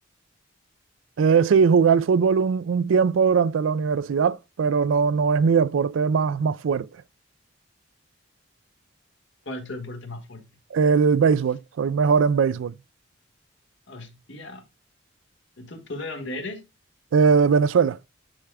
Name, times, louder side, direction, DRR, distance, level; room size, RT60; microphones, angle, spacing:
voice 1, 1.2-6.9 10.7-12.7 17.1-18.0, right 6 dB, 80° right, 0.4 m, -20 dB
voice 2, 9.4-10.5 13.9-14.6 15.6-16.6, left 2 dB, 65° left, 1.7 m, -36 dB
9.8 x 4.9 x 2.2 m
head